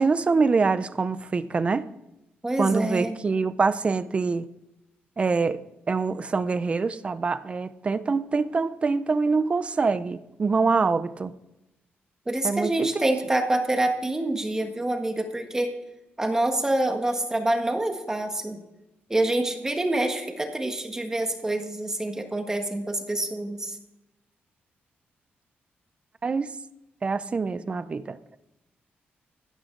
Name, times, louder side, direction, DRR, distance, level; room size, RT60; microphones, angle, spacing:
voice 1, 0.0-1.9 2.6-4.4 5.2-5.6 5.9-11.3 12.4-13.0 26.2-26.5 27.0-28.2, right 4 dB, 30° right, 15 dB, 0.6 m, -25 dB
voice 2, 2.4-3.2 12.3-15.7 16.2-18.6 19.1-23.8, right 1 dB, 15° right, 5 dB, 1.5 m, -26 dB
15.5 x 11.5 x 3.8 m, 0.92 s
wide cardioid pair, 140°, 4 cm